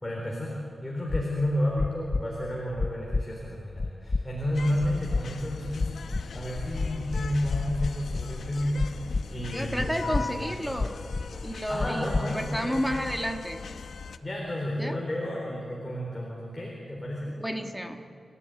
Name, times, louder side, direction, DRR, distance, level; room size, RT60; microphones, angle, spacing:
voice 1, 0.0-5.9 6.3-8.9 9.3-10.8 11.7-12.9 14.2-17.3, left 1 dB, 15° left, -3 dB, 3.9 m, -31 dB
sound 1, 1.1-1.2 1.8-2.2 2.8-3.2 3.8-4.2 4.8-5.2 5.8-6.2 6.8-7.2 7.8-8.2 8.8-9.2 9.8-10.2 10.8-11.2 11.8-12.2, left 3 dB, 35° left, 0.7 m, -28 dB
sound 2, 4.5-14.2, left 5 dB, 80° left, 1.0 m, -37 dB
voice 2, 9.5-11.0 11.4-13.6 14.8-15.0 17.4-18.1, equal, 5° right, 5 dB, 1.5 m, -31 dB
28.5 x 15.0 x 9.4 m, 2.7 s
wide cardioid pair, 165°, 0 cm